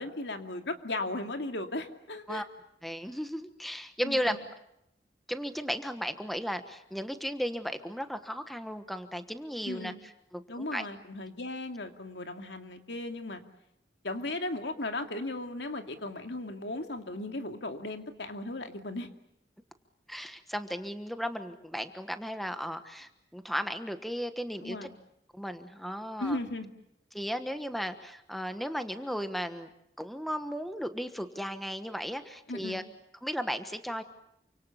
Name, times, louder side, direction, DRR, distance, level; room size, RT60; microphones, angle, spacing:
voice 1, 0.0-2.4 4.0-4.4 9.6-10.0 10.5-13.4 14.0-19.1 24.6-24.9 26.2-26.7 32.5-32.8, left 2 dB, 85° left, 6 dB, 2.6 m, -36 dB
voice 2, 2.8-4.4 5.3-9.9 10.3-10.9 20.1-24.8 25.3-26.4 27.1-29.7 30.0-32.8 33.2-34.0, equal, ahead, 9 dB, 1.3 m, -35 dB
28.5 x 25.5 x 7.2 m, 0.79 s
head